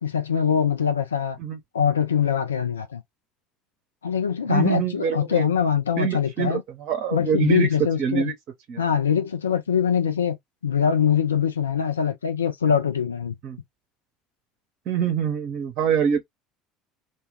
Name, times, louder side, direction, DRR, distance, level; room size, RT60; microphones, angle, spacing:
voice 1, 0.0-1.4 1.7-3.0 4.0-6.6 7.1-8.3 8.8-10.4 10.6-13.3, left 7 dB, 80° left, 0.4 m, -23 dB
voice 2, 4.5-5.5 6.0-7.7 8.0-8.3 8.7-8.8 13.4-13.6 14.9-16.2, right 7 dB, 50° right, 0.6 m, -25 dB
2.2 x 2.2 x 3.3 m
figure-of-eight pair, 60°, 0 cm